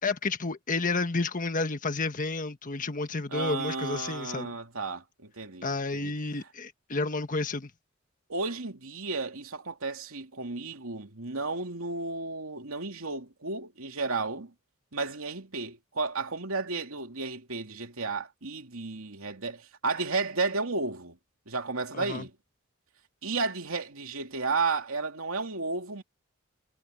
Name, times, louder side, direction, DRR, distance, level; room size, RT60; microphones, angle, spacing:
voice 1, 0.0-4.5 5.6-7.7 21.9-22.3, left 3 dB, 40° left, 1.4 m, -31 dB
voice 2, 3.3-6.1 8.3-14.5 14.9-21.2 21.5-22.3 23.2-26.0, right 3 dB, 85° right, 2.7 m, -33 dB
head